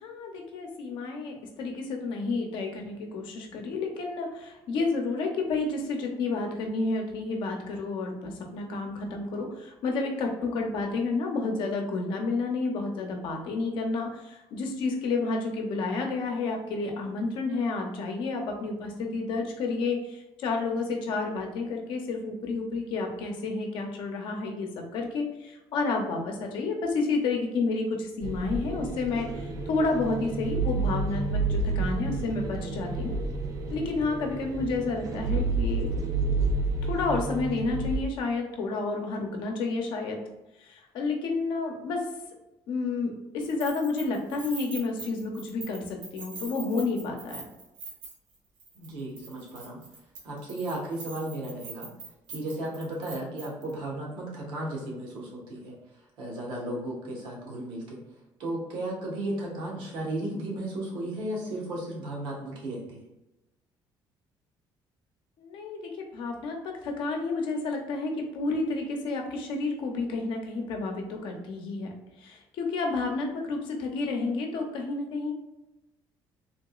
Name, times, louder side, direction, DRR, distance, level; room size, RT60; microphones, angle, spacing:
voice 1, 0.0-29.3 29.7-33.1 33.7-35.9 36.8-40.2 40.6-42.0 42.7-47.4 65.4-71.9 72.2-75.3, left 3 dB, 70° left, 2 dB, 0.7 m, -30 dB
sound 1, 28.2-38.0, right 3 dB, 40° right, 0.4 m, -30 dB
Keys jangling, 43.4-48.3 48.6-48.9 49.2-53.7, right 3 dB, 90° right, 1.2 m, -43 dB
voice 2, 48.7-49.8 50.2-51.9 52.3-55.7 56.2-58.0 58.4-63.0, right 1 dB, 75° right, -2 dB, 1.2 m, -34 dB
3.6 x 2.8 x 2.3 m, 0.97 s
cardioid pair, 170°, 9 cm